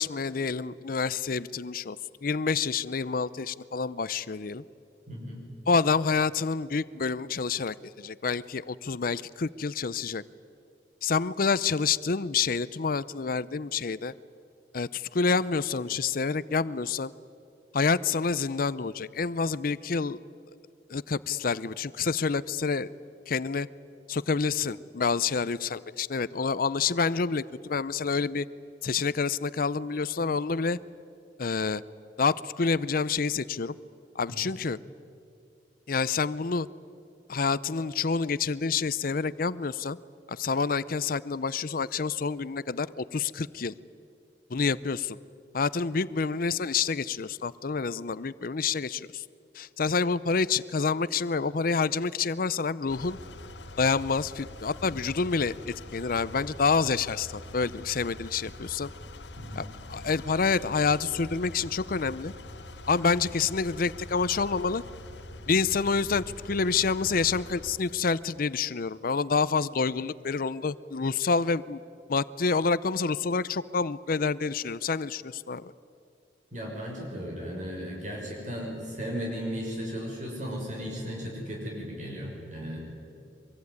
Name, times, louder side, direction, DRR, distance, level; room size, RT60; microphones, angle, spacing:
voice 1, 0.0-2.0 2.2-4.6 5.7-10.2 11.0-14.1 14.7-17.1 17.7-20.2 20.9-22.9 23.3-23.7 24.1-28.5 28.8-30.8 31.4-31.8 32.2-33.7 34.2-34.8 35.9-36.7 37.3-40.0 40.3-43.7 44.5-45.2 45.5-49.2 49.5-53.2 53.8-58.9 59.6-62.3 62.9-64.8 65.5-71.8 72.1-75.7, left 5 dB, 55° left, 17 dB, 0.6 m, -28 dB
voice 2, 5.1-5.4 34.3-34.4 59.4-59.7 76.5-82.8, equal, 45° right, -2 dB, 5.8 m, -36 dB
sound 1, 52.9-68.0, left 2 dB, 85° left, 1.6 m, -44 dB
23.5 x 23.5 x 9.5 m, 2.5 s
head